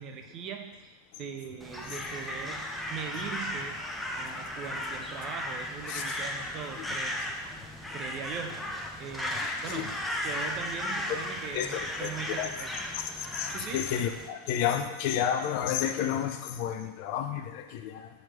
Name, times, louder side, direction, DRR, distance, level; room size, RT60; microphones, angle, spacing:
voice 1, 0.0-2.6 2.9-3.8 4.1-7.2 7.9-12.7 13.5-14.0, right 7 dB, 35° right, 5 dB, 0.8 m, -40 dB
Crow, 1.6-14.3, left 1 dB, ahead, 0.8 m, -36 dB
voice 2, 11.5-12.1 12.4-12.5 12.9-18.1, left 9 dB, 45° left, 7 dB, 0.6 m, -31 dB
6.4 x 4.6 x 4.8 m, 1.2 s
figure-of-eight pair, 90°, 0 cm